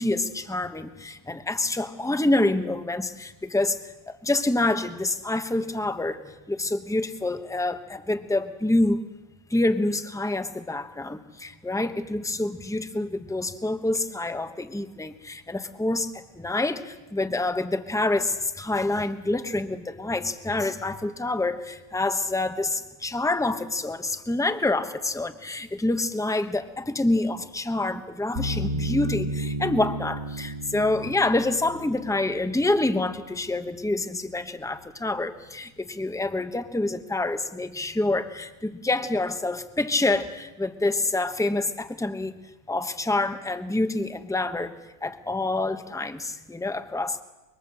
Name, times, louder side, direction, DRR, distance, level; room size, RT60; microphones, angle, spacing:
voice 1, 0.0-3.8 4.1-9.0 9.5-42.4 42.7-47.2, left 2 dB, 5° left, 9 dB, 0.6 m, -27 dB
sound 1, 28.4-33.5, right 1 dB, 30° right, 1.1 m, -33 dB
25.0 x 23.5 x 7.7 m, 1.1 s
omnidirectional pair, 1.9 m